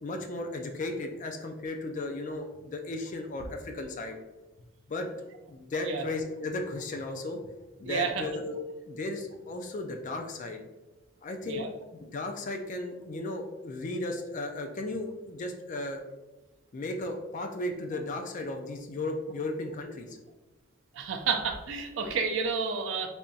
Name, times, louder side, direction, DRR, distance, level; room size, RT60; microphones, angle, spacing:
voice 1, 0.0-4.2 4.9-5.1 5.5-7.4 7.8-8.6 8.9-10.6 11.2-11.7 11.9-16.0 16.7-20.2, left 2 dB, 35° left, 4 dB, 0.3 m, -35 dB
voice 2, 7.8-8.2 11.5-11.7 20.9-23.1, right 5 dB, 60° right, 5 dB, 0.4 m, -30 dB
3.4 x 2.8 x 2.7 m, 1.1 s
head